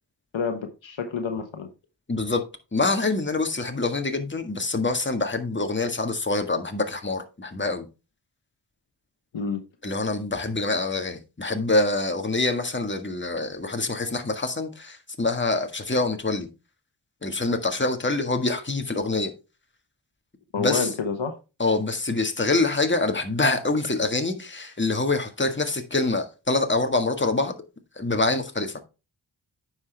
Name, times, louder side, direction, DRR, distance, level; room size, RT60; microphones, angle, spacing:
voice 1, 0.3-1.7 9.3-9.6 20.5-21.3, left 5 dB, 85° left, 1.1 m, -28 dB
voice 2, 2.1-2.4 2.7-7.8 9.8-16.5 17.2-19.3 20.6-20.9 21.6-27.5 28.0-28.7, left 2 dB, 25° left, 1.6 m, -25 dB
9.4 x 6.1 x 3.4 m
cardioid pair, 45°, 45 cm